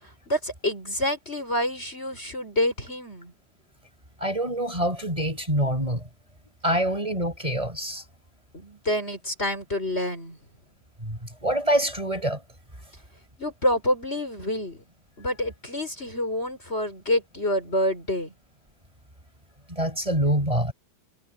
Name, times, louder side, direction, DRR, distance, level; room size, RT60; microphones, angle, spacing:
voice 1, 0.0-3.3 8.5-10.4 13.4-14.8 15.2-18.3, left 1 dB, 35° left, 5.7 m, -27 dB
voice 2, 4.2-6.0 6.6-8.0 11.0-12.4 19.7-20.7, right 1 dB, 15° right, 6.3 m, -25 dB
omnidirectional pair, 2.0 m